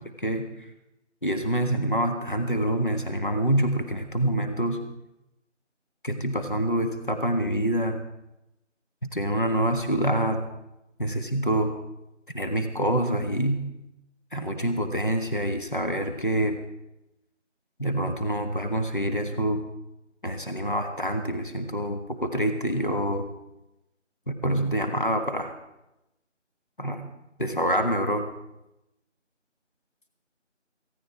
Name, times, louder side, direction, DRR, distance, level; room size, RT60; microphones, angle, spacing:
voice 1, 1.2-4.8 6.0-8.0 9.1-10.4 11.0-11.7 12.3-13.6 14.3-16.6 17.8-19.6 20.2-23.3 24.3-25.5 26.8-27.1 27.4-28.3, right 1 dB, 45° left, 6 dB, 1.5 m, -26 dB
17.0 x 16.0 x 4.6 m, 0.89 s
figure-of-eight pair, 175°, 36 cm